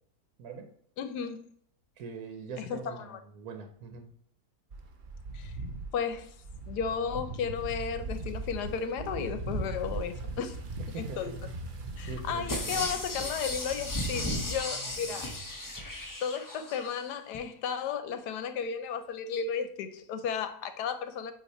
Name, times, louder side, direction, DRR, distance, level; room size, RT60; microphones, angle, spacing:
voice 1, 0.4-0.7 2.0-4.1 10.9-11.5 12.0-12.9 14.7-15.2, right 4 dB, 70° right, 1.2 m, -42 dB
voice 2, 1.0-1.4 2.6-3.2 5.3-5.5 5.9-6.3 6.7-10.6 11.0-11.3 12.0-15.3 16.2-21.3, left 7 dB, 80° left, 1.3 m, -34 dB
sound 1, 4.7-14.4, right 2 dB, 50° right, 0.6 m, -39 dB
sound 2, 12.5-16.9 17.3-17.4, left 1 dB, 25° left, 0.4 m, -35 dB
8.4 x 2.9 x 4.2 m
omnidirectional pair, 1.7 m